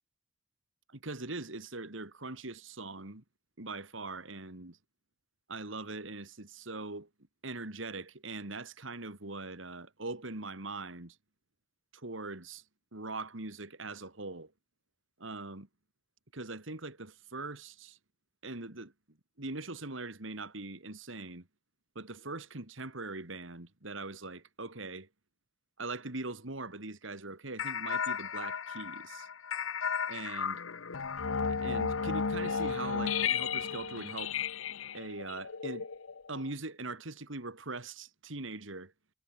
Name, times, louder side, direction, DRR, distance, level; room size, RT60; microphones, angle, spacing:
voice 1, 0.9-3.2 3.6-4.8 5.5-7.1 7.4-11.2 11.9-12.6 12.9-14.5 15.2-15.7 16.3-18.0 18.4-18.9 19.4-21.5 21.9-25.1 25.8-29.3 30.1-30.6 31.5-34.4 34.9-35.9 36.3-38.9, right 3 dB, 70° right, 2.8 m, -41 dB
sound 1, 27.6-36.5, left 6 dB, 85° left, 1.0 m, -34 dB
head